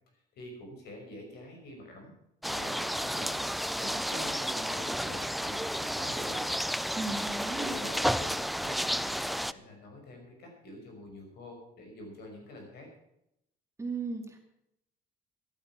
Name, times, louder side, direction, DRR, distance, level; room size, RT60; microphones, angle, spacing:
voice 1, 0.1-2.1 2.5-3.4 3.8-6.4 7.6-12.9, left 1 dB, 70° left, 3 dB, 5.8 m, -46 dB
sound 1, 2.4-9.5, equal, ahead, 0.4 m, -32 dB
voice 2, 6.9-7.9 13.8-14.4, right 3 dB, 15° right, 3 dB, 2.6 m, -36 dB
14.5 x 12.0 x 6.1 m, 0.81 s
cardioid pair, 110°, 17 cm